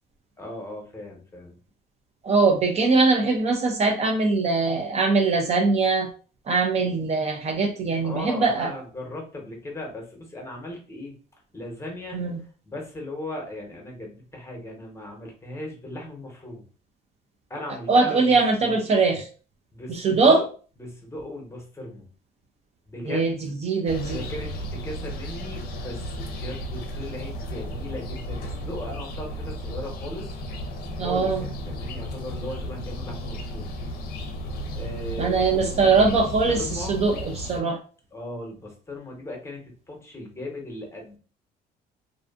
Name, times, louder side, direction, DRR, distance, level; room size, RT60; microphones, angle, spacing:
voice 1, 0.4-1.6 8.0-11.2 11.5-12.2 12.6-16.6 17.5-18.3 18.6-18.8 19.7-20.5 20.8-22.1 22.9-23.4 24.1-30.3 31.0-33.8 34.8-37.1 38.1-41.2, left 1 dB, 15° left, 0 dB, 0.8 m, -37 dB
voice 2, 2.2-6.1 6.5-8.7 12.1-12.4 17.9-19.3 19.9-20.4 23.0-23.3 23.6-24.2 31.0-31.4 35.2-37.8, right 4 dB, 40° right, 3 dB, 0.4 m, -21 dB
sound 1, 23.9-37.6, equal, 65° left, 0.5 m, -34 dB
2.5 x 2.4 x 2.4 m, 0.38 s
cardioid pair, 110°, 17 cm